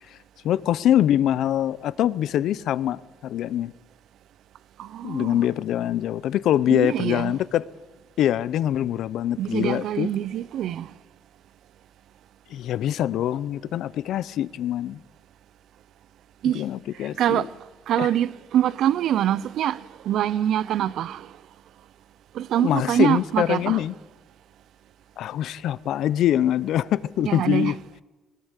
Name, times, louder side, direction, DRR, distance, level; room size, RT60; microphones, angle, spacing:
voice 1, 0.4-3.7 5.0-7.6 8.2-10.1 12.5-15.0 16.5-17.5 18.0-18.1 22.6-24.0 25.2-27.8, left 11 dB, 80° left, 0.6 m, -24 dB
voice 2, 4.8-5.4 6.7-7.4 9.4-10.9 16.4-16.6 17.0-17.5 17.9-21.3 22.3-23.8 27.3-27.7, right 11 dB, 75° right, 0.6 m, -25 dB
20.0 x 18.5 x 8.2 m
cardioid pair, 90°, 0 cm